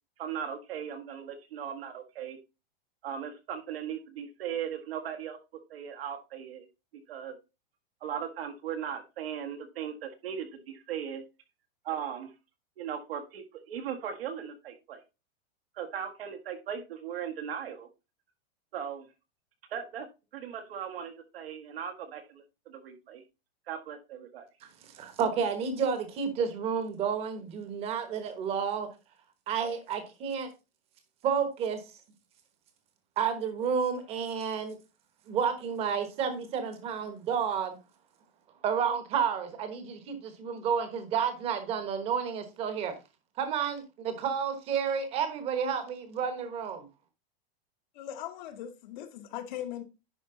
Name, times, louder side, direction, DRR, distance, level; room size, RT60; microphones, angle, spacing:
voice 1, 0.2-2.4 3.0-5.4 5.7-6.7 7.1-7.4 8.0-11.2 11.9-12.3 12.8-15.0 15.8-17.9 18.7-19.1 19.7-20.1 20.3-23.2 23.7-24.5, right 8 dB, 70° right, 1.8 m, -38 dB
voice 2, 24.9-28.9 29.5-30.5 31.2-31.8 33.2-34.8 35.3-37.8 38.6-42.9 43.4-46.8, right 7 dB, 20° right, 1.1 m, -30 dB
voice 3, 48.0-49.8, left 11 dB, 50° left, 1.1 m, -39 dB
10.5 x 4.5 x 3.8 m
supercardioid pair, 175°, 30 cm